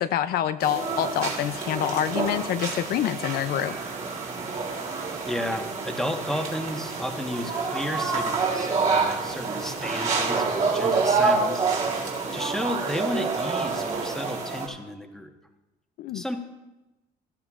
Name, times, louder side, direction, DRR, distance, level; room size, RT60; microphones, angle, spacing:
voice 1, 0.0-3.8 16.0-16.2, left 11 dB, 65° left, 11 dB, 0.4 m, -26 dB
sound 1, 0.6-14.7, right 4 dB, 45° right, 3.3 m, -27 dB
voice 2, 4.5-4.9 5.2-12.0 12.3-15.3 16.1-16.4, left 1 dB, 5° left, 3 dB, 1.2 m, -33 dB
17.0 x 12.0 x 2.4 m, 1.0 s
cardioid pair, 110°, 17 cm